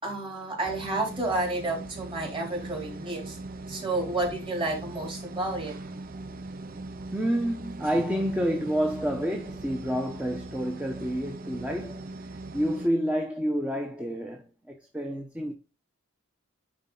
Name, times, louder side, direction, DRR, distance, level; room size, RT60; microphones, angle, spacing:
voice 1, 0.0-3.4 3.7-5.8, right 2 dB, 25° right, 3.4 m, -30 dB
sound 1, 0.6-12.9, right 2 dB, 45° right, 0.6 m, -40 dB
voice 2, 7.1-15.5, equal, 5° right, 0.8 m, -29 dB
10.0 x 4.1 x 3.8 m
head